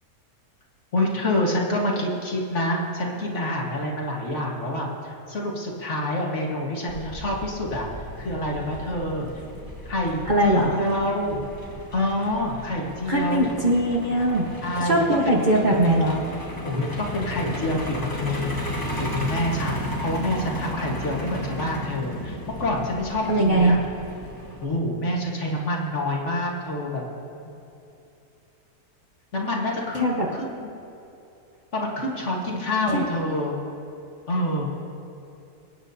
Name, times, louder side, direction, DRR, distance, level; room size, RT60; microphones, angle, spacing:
voice 1, 0.9-7.9 8.2-9.3 9.8-11.4 11.9-13.5 14.6-15.4 16.6-18.6 18.9-23.8 24.6-27.0 29.3-30.7 31.7-33.5 34.3-34.7, left 1 dB, 45° left, -2 dB, 1.8 m, -27 dB
Truck, 6.9-24.6, left 1 dB, 15° left, 1.2 m, -35 dB
voice 2, 10.3-10.8 13.1-14.5 14.8-16.2 23.3-23.7 30.0-30.3 32.9-33.0, right 1 dB, 30° right, -3 dB, 1.2 m, -20 dB
24.5 x 9.3 x 2.7 m, 2.8 s
omnidirectional pair, 1.7 m